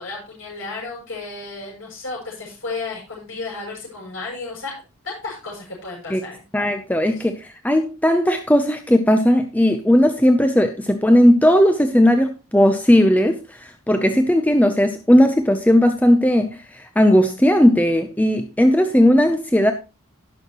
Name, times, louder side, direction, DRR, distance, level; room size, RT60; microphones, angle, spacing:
voice 1, 0.0-4.8 5.0-6.4 7.1-7.2, left 3 dB, 65° left, 6.7 m, -33 dB
voice 2, 6.5-19.7, equal, 5° left, 0.7 m, -17 dB
17.5 x 6.5 x 3.0 m
head